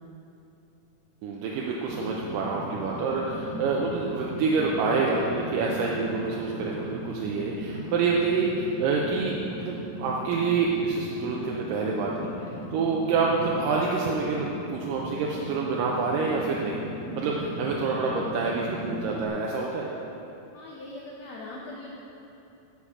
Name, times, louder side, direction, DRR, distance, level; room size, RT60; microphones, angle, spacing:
voice 1, 1.2-12.3 12.7-16.8 17.2-19.9, right 4 dB, 75° right, -2 dB, 2.2 m, -27 dB
Fire, 1.8-19.3, right 1 dB, 55° right, 1.7 m, -38 dB
voice 2, 20.5-21.9, left 2 dB, 85° left, -4 dB, 1.4 m, -40 dB
11.0 x 6.9 x 4.9 m, 2.9 s
omnidirectional pair, 4.2 m